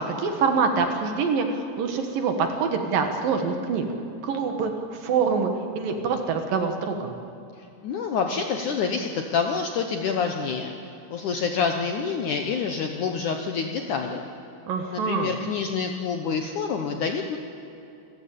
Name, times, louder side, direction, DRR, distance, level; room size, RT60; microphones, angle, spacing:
voice 1, 0.0-3.8 4.2-5.5 5.8-7.1 14.7-15.3, right 5 dB, 65° right, 5 dB, 3.0 m, -25 dB
voice 2, 7.8-10.7 11.1-14.3 14.9-17.4, left 5 dB, 70° left, 4 dB, 2.0 m, -27 dB
28.0 x 14.5 x 8.6 m, 2.8 s
omnidirectional pair, 4.8 m